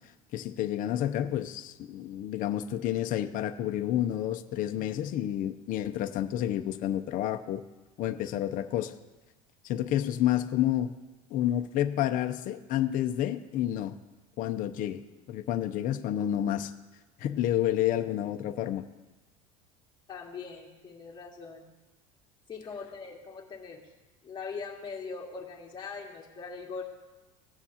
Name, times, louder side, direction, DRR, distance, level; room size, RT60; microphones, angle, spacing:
voice 1, 0.3-7.6 8.0-8.9 9.6-10.9 11.3-13.9 14.4-15.0 15.3-16.7 17.2-18.8, left 12 dB, 50° left, 7 dB, 0.6 m, -29 dB
voice 2, 20.1-21.7 22.5-23.8 24.2-26.8, left 5 dB, 25° left, -3 dB, 2.1 m, -41 dB
17.0 x 7.1 x 2.8 m, 1.1 s
supercardioid pair, 115°, 18 cm